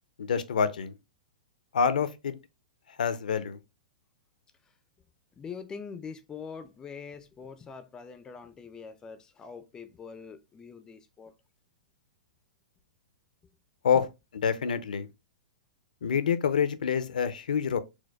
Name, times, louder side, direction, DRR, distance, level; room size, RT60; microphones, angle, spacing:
voice 1, 0.2-0.9 1.7-2.3 3.0-3.6 13.8-14.0 14.4-15.1 16.0-17.8, left 7 dB, 80° left, 0.5 m, -26 dB
voice 2, 5.4-11.3, left 6 dB, 15° left, 0.3 m, -43 dB
4.4 x 2.2 x 2.2 m
hypercardioid pair, 130°, 4 cm